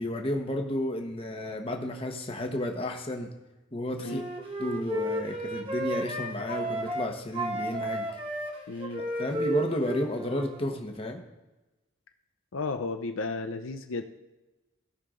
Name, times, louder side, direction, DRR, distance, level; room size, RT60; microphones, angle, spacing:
voice 1, 0.0-3.3 3.7-4.3 4.6-8.1 9.2-11.2, left 1 dB, 25° left, 3 dB, 1.2 m, -32 dB
Wind instrument woodwind instrument, 4.0-7.1 7.3-10.6, right 1 dB, 25° right, 1.3 m, -33 dB
voice 2, 8.7-9.0 12.5-14.0, left 3 dB, 75° left, 7 dB, 0.6 m, -33 dB
16.5 x 5.8 x 3.8 m, 1.1 s
head